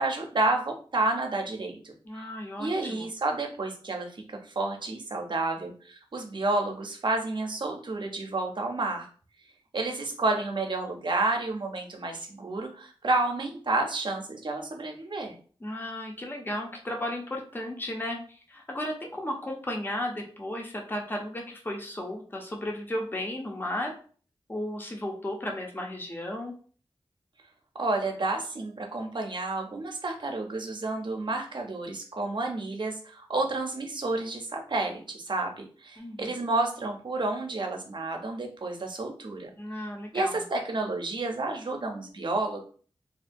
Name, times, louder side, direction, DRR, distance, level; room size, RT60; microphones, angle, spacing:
voice 1, 0.0-1.9 2.6-9.1 9.7-15.3 27.8-39.5 40.1-42.6, right 2 dB, 55° right, 2 dB, 0.5 m, -30 dB
voice 2, 2.0-3.1 15.6-23.9 24.5-26.5 36.0-36.4 39.6-40.4, left 1 dB, 20° left, 0 dB, 0.5 m, -34 dB
2.4 x 2.1 x 2.5 m, 0.42 s
wide cardioid pair, 80°, 10 cm